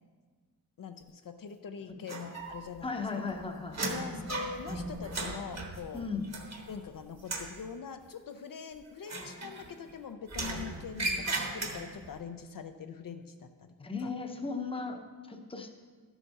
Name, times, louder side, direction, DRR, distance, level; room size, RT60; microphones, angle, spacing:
voice 1, 0.8-2.9 3.9-6.0 6.7-13.7 14.0-14.1, left 6 dB, 65° left, 7 dB, 0.5 m, -43 dB
sound 1, 2.1-2.8 3.1-6.9 7.2-7.6 9.0-9.9 10.3-12.1, right 2 dB, 45° right, 1.2 m, -37 dB
voice 2, 2.8-3.9 5.9-6.3 13.8-15.0 15.3-15.7, left 4 dB, 15° left, 4 dB, 0.7 m, -36 dB
12.5 x 7.2 x 4.1 m, 1.5 s
wide cardioid pair, 145°, 37 cm